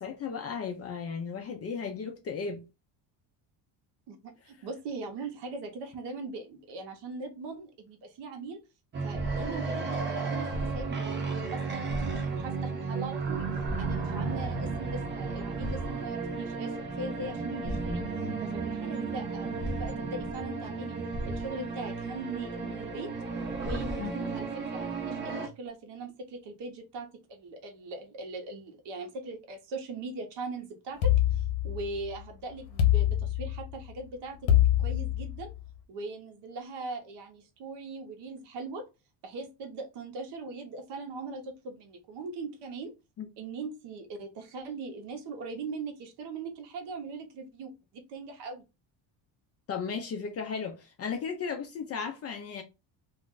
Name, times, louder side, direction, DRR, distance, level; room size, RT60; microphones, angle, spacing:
voice 1, 0.0-2.6 14.3-14.5 24.0-24.1 43.2-43.3 49.7-52.6, left 6 dB, 35° left, 0.4 m, -35 dB
voice 2, 4.1-8.6 9.0-13.5 13.8-18.0 18.4-21.0 21.2-23.1 23.6-34.4 34.8-35.5 35.9-38.9 39.2-42.9 43.4-48.6, right 3 dB, 60° right, 0.9 m, -40 dB
sound 1, 8.9-25.5, right 4 dB, 25° right, 0.5 m, -33 dB
sound 2, 31.0-32.1 32.8-33.8 34.5-35.6, left 12 dB, 85° left, 0.8 m, -24 dB
2.4 x 2.4 x 3.7 m
cardioid pair, 160°, 46 cm